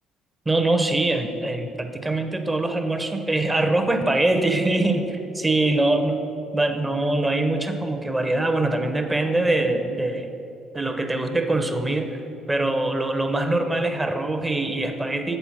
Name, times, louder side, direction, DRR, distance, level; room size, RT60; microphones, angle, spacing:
voice 1, 0.5-6.2 6.5-10.3 10.7-12.2 12.5-15.4, right 2 dB, 20° right, 7 dB, 0.7 m, -23 dB
8.0 x 4.2 x 5.7 m, 2.9 s
hypercardioid pair, 55°, 0 cm